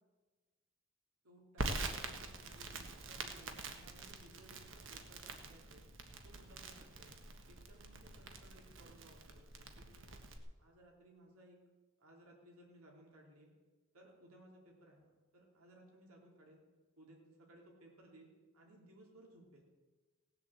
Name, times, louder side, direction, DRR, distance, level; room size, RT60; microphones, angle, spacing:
voice 1, 1.2-5.8 6.2-7.2 7.5-10.2 10.6-11.6 12.0-13.5 13.9-16.6 17.0-19.6, right 1 dB, 85° right, -1 dB, 3.1 m, -61 dB
Crackle, 1.6-10.4, right 3 dB, 60° right, 1.4 m, -45 dB
17.5 x 7.5 x 7.8 m, 1.3 s
head